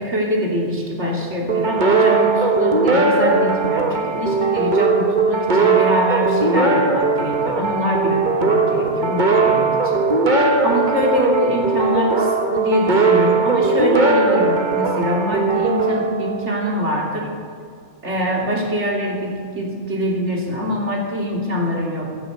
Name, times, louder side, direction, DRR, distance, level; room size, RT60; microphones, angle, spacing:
voice 1, 0.0-10.1 10.6-17.3 18.0-22.1, equal, 60° right, -1 dB, 3.3 m, -23 dB
sound 1, 1.5-16.8, right 3 dB, 40° right, 1.5 m, -18 dB
16.5 x 10.0 x 7.9 m, 2.2 s
omnidirectional pair, 1.3 m